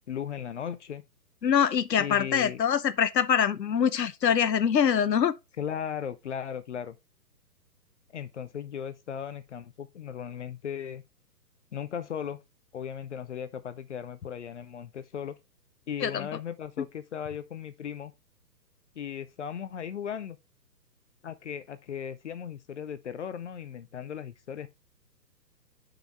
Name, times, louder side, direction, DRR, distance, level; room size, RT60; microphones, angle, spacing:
voice 1, 0.1-1.0 2.0-2.6 5.6-7.0 8.1-11.0 11.7-12.4 12.7-15.4 15.9-18.1 19.0-20.4 21.2-24.7, left 8 dB, 45° left, 0.7 m, -37 dB
voice 2, 1.4-5.3 16.0-16.3, left 8 dB, 80° left, 0.8 m, -24 dB
6.9 x 5.6 x 3.4 m
figure-of-eight pair, 130°, 50 cm